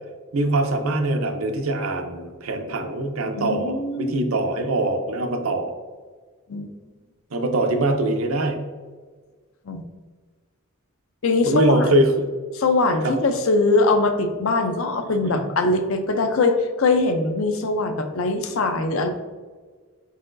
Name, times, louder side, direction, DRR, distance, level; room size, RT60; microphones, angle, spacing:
voice 1, 0.3-5.7 7.3-8.6 11.5-12.3 13.0-13.1 15.2-15.5, right 1 dB, 75° right, 5 dB, 0.6 m, -23 dB
voice 2, 3.4-4.1 6.5-6.7 9.7-9.8 11.2-11.9 12.5-19.1, left 3 dB, 75° left, 6 dB, 0.5 m, -22 dB
4.6 x 4.1 x 2.5 m, 1.4 s
head